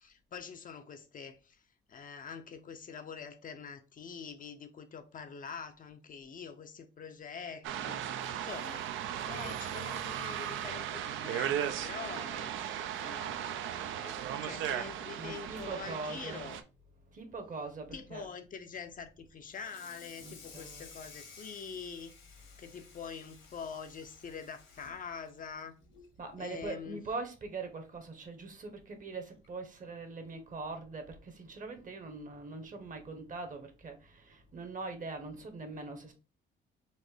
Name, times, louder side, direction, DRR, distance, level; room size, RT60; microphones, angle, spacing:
voice 1, 0.0-8.1 8.4-16.6 17.9-22.1 22.6-25.8 26.4-27.1, left 6 dB, 45° left, 0.5 m, -45 dB
sound 1, 7.6-16.6, right 10 dB, 80° right, 0.4 m, -37 dB
voice 2, 15.2-16.5 17.1-18.3 20.2-20.9 26.2-36.1, right 3 dB, 40° right, 0.9 m, -42 dB
Water tap faucet / Sink (filling or washing), 19.5-26.2 26.5-26.8 27.1-27.2 27.7-27.8 28.9-29.0 29.4-29.7, left 5 dB, 80° left, 1.4 m, -55 dB
4.1 x 2.5 x 3.4 m
cardioid pair, 90°, 20 cm